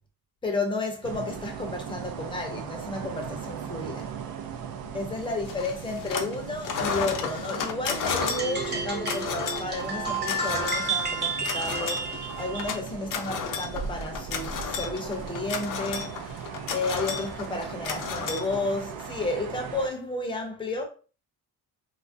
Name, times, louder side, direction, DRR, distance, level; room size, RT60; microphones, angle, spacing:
voice 1, 0.4-4.1 4.9-20.8, left 2 dB, 15° left, 0.5 m, -32 dB
sound 1, 1.0-19.9, right 7 dB, 75° right, 0.5 m, -39 dB
sound 2, 5.5-6.4 6.6-19.0, left 6 dB, 60° left, 0.5 m, -33 dB
sound 3, 8.0-12.8, right 3 dB, 30° right, 0.8 m, -31 dB
3.0 x 2.4 x 2.5 m
cardioid pair, 175°, 37 cm